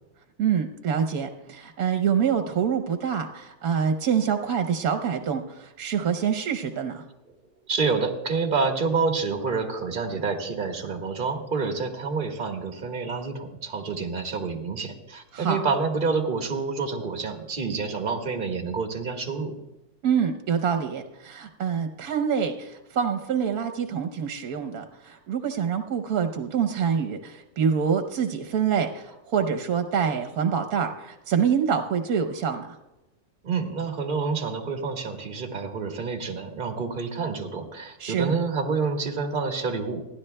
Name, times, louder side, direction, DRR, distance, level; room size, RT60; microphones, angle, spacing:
voice 1, 0.4-7.0 15.3-15.6 20.0-32.8 38.0-38.3, right 7 dB, 70° right, 6 dB, 1.3 m, -26 dB
voice 2, 7.7-19.5 33.4-40.0, right 4 dB, 35° right, 3 dB, 1.5 m, -28 dB
29.0 x 11.0 x 2.2 m, 0.99 s
omnidirectional pair, 1.6 m